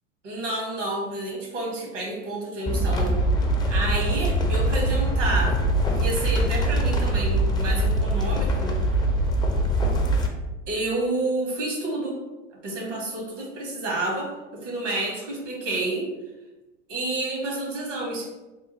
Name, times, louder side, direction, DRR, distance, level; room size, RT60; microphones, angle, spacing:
voice 1, 0.2-3.2 3.7-5.6 5.9-8.7 10.7-12.2 12.6-16.1 16.9-18.3, right 2 dB, 80° right, -2 dB, 1.4 m, -29 dB
sound 1, 2.7-10.3, right 1 dB, 10° left, 0.4 m, -23 dB
3.6 x 2.2 x 3.0 m, 1.1 s
hypercardioid pair, 90°, 36 cm